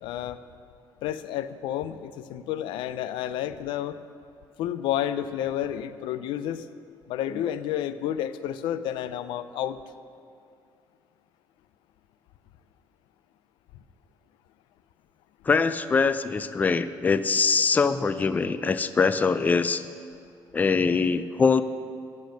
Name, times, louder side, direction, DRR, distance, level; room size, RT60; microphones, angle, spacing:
voice 1, 0.0-0.4 1.0-4.0 4.6-6.7 7.1-9.8, left 11 dB, 85° left, 13 dB, 0.5 m, -30 dB
voice 2, 15.5-19.8 20.5-21.6, left 5 dB, 20° left, 13 dB, 0.4 m, -23 dB
11.5 x 8.5 x 6.5 m, 2.4 s
cardioid pair, 120°, 8 cm